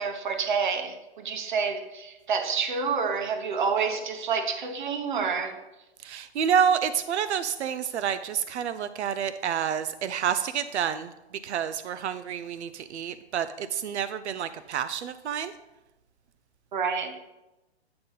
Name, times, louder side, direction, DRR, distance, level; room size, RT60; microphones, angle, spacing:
voice 1, 0.0-5.6 16.7-17.2, right 5 dB, 45° right, 7 dB, 1.0 m, -28 dB
voice 2, 6.0-11.1 11.4-15.5, right 8 dB, 90° right, 12 dB, 0.6 m, -28 dB
8.8 x 3.8 x 5.5 m, 0.98 s
hypercardioid pair, 175°, 33 cm